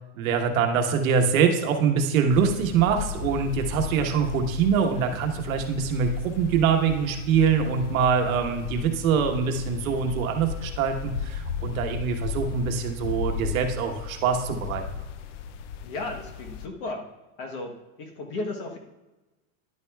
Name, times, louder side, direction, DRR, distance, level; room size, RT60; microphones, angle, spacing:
voice 1, 0.2-14.8, right 6 dB, 70° right, 4 dB, 1.2 m, -24 dB
sound 1, 2.3-16.7, left 7 dB, 55° left, 0.5 m, -35 dB
voice 2, 15.8-17.0 17.4-18.8, left 2 dB, 35° left, 3 dB, 1.0 m, -34 dB
10.5 x 9.6 x 2.3 m, 1.1 s
supercardioid pair, 175°, 43 cm